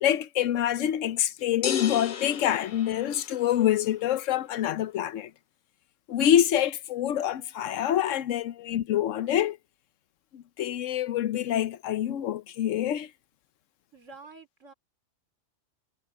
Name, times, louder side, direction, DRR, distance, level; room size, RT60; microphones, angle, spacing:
voice 1, 0.0-5.3 6.1-9.6 10.3-13.1, left 11 dB, 75° left, 1.0 m, -26 dB
sound 1, 1.6-3.7, left 9 dB, 45° left, 0.8 m, -34 dB
voice 2, 13.9-14.7, right 4 dB, 75° right, 3.3 m, -48 dB
omnidirectional pair, 1.3 m